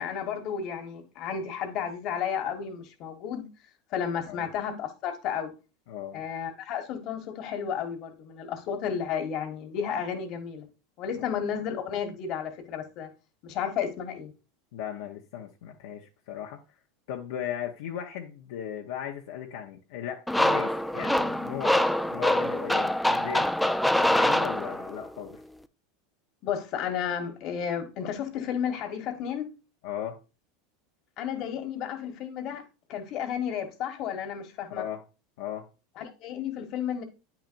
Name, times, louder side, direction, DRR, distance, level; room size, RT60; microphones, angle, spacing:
voice 1, 0.0-3.4 3.9-5.5 6.1-10.7 11.0-13.1 13.4-14.3 26.4-29.5 31.2-32.6 32.9-34.8 36.0-37.0, left 8 dB, 50° left, 1.4 m, -32 dB
voice 2, 5.9-6.2 14.7-16.6 17.1-21.8 22.1-23.5 23.9-25.4 29.8-30.2 34.7-35.0 35.4-35.7, left 10 dB, 75° left, 0.8 m, -37 dB
sound 1, 20.3-25.1, left 1 dB, 5° left, 0.4 m, -25 dB
8.8 x 5.9 x 2.6 m
hypercardioid pair, 100°, 0 cm